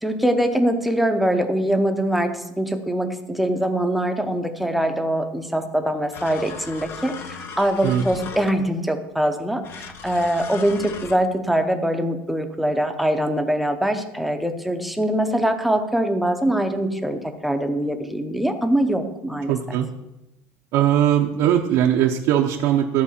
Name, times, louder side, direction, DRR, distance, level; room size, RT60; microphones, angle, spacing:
voice 1, 0.0-19.8, right 1 dB, ahead, 5 dB, 0.8 m, -23 dB
sound 1, 6.1-8.8 9.6-11.2, left 5 dB, 35° left, 0.8 m, -37 dB
voice 2, 19.5-19.9 20.7-23.0, right 10 dB, 60° right, 1 dB, 0.8 m, -20 dB
13.5 x 4.7 x 7.1 m, 0.95 s
cardioid pair, 170°, 7 cm